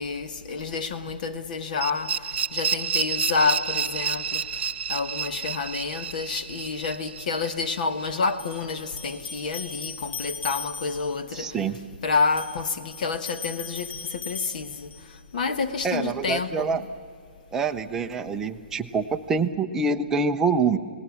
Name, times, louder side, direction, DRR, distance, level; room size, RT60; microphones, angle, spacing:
voice 1, 0.0-2.1 2.5-4.4 4.9-11.5 12.0-14.9 15.3-16.9, left 4 dB, 45° left, 10 dB, 1.2 m, -28 dB
sound 1, 1.8-8.6, right 7 dB, 75° right, 0.6 m, -30 dB
sound 2, 7.1-7.2 8.4-11.2 12.1-15.2, left 5 dB, 85° left, 2.0 m, -38 dB
voice 2, 11.3-11.8 15.8-16.8 17.5-20.8, right 4 dB, 5° right, 5 dB, 0.6 m, -25 dB
28.5 x 18.5 x 7.1 m, 2.1 s
hypercardioid pair, 170°, 6 cm